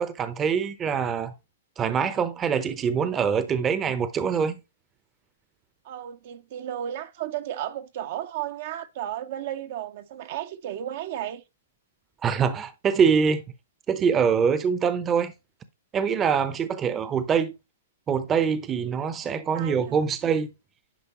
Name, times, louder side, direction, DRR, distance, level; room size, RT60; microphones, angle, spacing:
voice 1, 0.0-1.3 1.8-4.6 12.2-13.4 13.9-15.3 15.9-17.5 18.1-20.5, right 6 dB, 20° right, 0.8 m, -24 dB
voice 2, 5.8-11.4 19.3-20.0, right 11 dB, 50° right, 0.8 m, -34 dB
10.0 x 5.1 x 3.0 m
hypercardioid pair, 140°, 0 cm